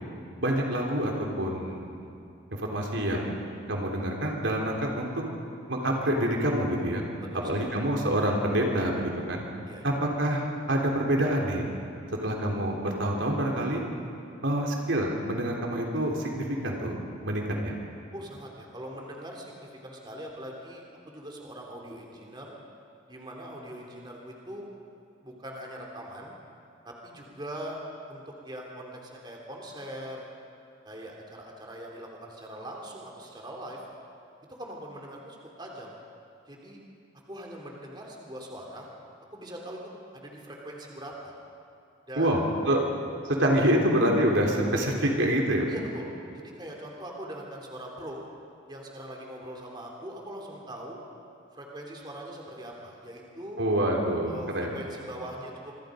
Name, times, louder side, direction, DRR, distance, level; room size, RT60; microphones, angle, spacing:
voice 1, 0.4-2.0 2.7-3.3 3.7-5.2 5.7-7.0 7.5-9.5 9.8-11.7 12.2-13.8 14.4-17.0 17.2-17.8 42.2-42.8 43.3-45.7 53.6-54.7, right 1 dB, 80° right, 0 dB, 3.7 m, -26 dB
voice 2, 7.3-7.7 9.6-9.9 18.1-22.5 23.1-24.7 25.2-26.3 26.8-27.8 28.1-30.3 30.8-33.8 34.6-35.9 36.5-36.8 37.3-38.9 39.3-41.3 42.1-42.4 45.7-48.2 48.7-51.0 51.5-53.6 54.3-55.7, right 1 dB, 25° right, -1 dB, 3.3 m, -41 dB
27.0 x 24.5 x 5.2 m, 2.5 s
head